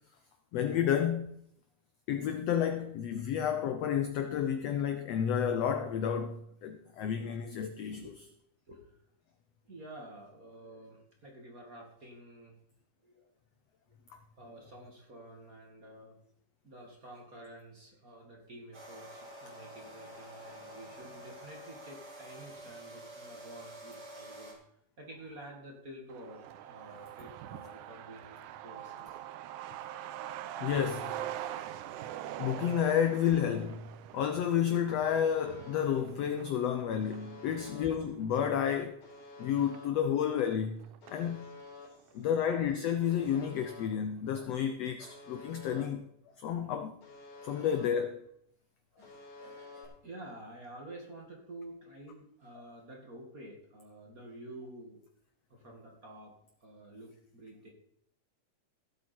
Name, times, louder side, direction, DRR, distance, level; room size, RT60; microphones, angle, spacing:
voice 1, 0.5-1.4 2.1-8.3 30.2-30.3 30.6-31.2 32.4-33.9 34.1-39.0 39.4-40.8 41.1-41.5 42.1-46.0 46.4-47.0 47.4-48.2 52.5-52.6, left 8 dB, 75° left, 1.5 m, -31 dB
voice 2, 7.9-8.2 8.7-9.0 9.7-12.5 13.0-13.3 14.4-16.2 16.6-24.6 25.0-29.1 37.2-37.7 41.0-41.4 41.8-42.3 47.2-47.6 48.9-55.0 55.5-56.3 56.6-57.7, right 1 dB, 30° right, 2.2 m, -50 dB
sound 1, 18.7-24.5, right 1 dB, 45° right, 3.9 m, -48 dB
Truck, 26.1-41.3 41.6-41.7 42.0-42.8 43.1-43.2 43.6-43.9, right 11 dB, 80° right, 2.1 m, -44 dB
Alarm, 35.0-35.9 37.0-37.9 39.0-39.9 41.0-41.9 43.0-43.9 45.0-45.9 47.0-47.9 49.0-49.9, left 3 dB, 60° left, 4.9 m, -50 dB
16.5 x 8.4 x 4.5 m
omnidirectional pair, 3.8 m